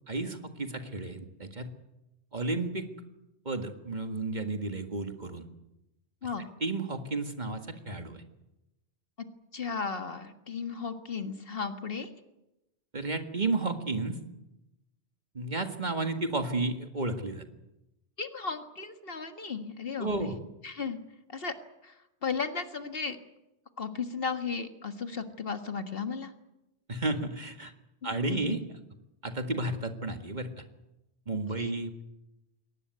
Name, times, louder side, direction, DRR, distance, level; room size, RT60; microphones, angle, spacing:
voice 1, 0.1-1.7 2.3-2.9 3.5-5.5 6.6-8.2 12.9-14.2 15.3-17.5 20.0-20.4 26.9-27.7 28.0-28.6 29.2-30.6 31.3-32.0, right 2 dB, 40° right, 6 dB, 1.9 m, -32 dB
voice 2, 9.5-12.1 18.2-20.3 20.6-21.0 21.3-21.5 21.8-21.9 22.2-23.2 23.8-26.3 28.0-28.5 31.6-31.7, left 5 dB, 55° left, 7 dB, 1.8 m, -35 dB
22.5 x 18.5 x 9.4 m, 0.94 s
omnidirectional pair, 1.1 m